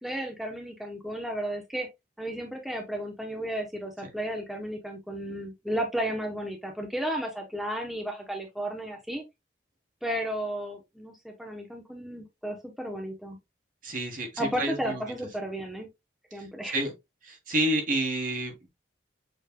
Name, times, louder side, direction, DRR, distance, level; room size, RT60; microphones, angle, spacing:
voice 1, 0.0-1.9 2.2-9.2 10.0-13.4 14.4-15.9 16.3-16.8, right 1 dB, ahead, 0.8 m, -33 dB
voice 2, 13.8-15.0 16.7-16.9 17.2-18.7, right 1 dB, 50° right, 1.6 m, -29 dB
6.6 x 3.2 x 2.3 m
head